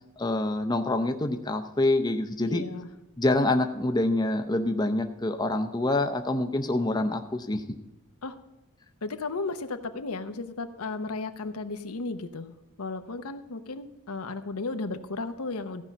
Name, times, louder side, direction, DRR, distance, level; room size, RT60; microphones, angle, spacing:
voice 1, 0.2-2.6 3.2-7.6, left 2 dB, 20° left, 6 dB, 0.6 m, -26 dB
voice 2, 2.4-2.9 8.2-8.4 9.0-15.8, left 3 dB, 80° left, 8 dB, 0.9 m, -34 dB
14.5 x 5.5 x 7.2 m, 0.99 s
head